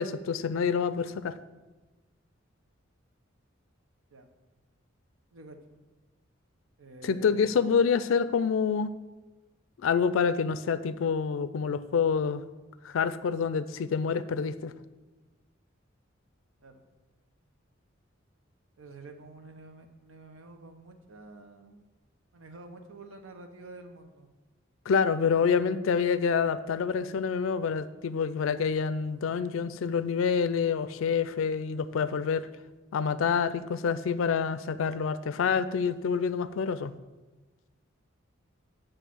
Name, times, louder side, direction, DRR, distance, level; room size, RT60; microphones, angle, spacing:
voice 1, 0.0-1.4 7.0-9.0 9.8-12.4 12.8-14.7 24.9-32.5 32.9-36.9, left 6 dB, 80° left, 14 dB, 0.4 m, -27 dB
voice 2, 5.3-5.8 6.8-7.6 16.6-16.8 18.8-21.8 22.3-24.3, right 2 dB, 85° right, 6 dB, 0.8 m, -49 dB
8.2 x 3.2 x 6.1 m, 1.2 s
head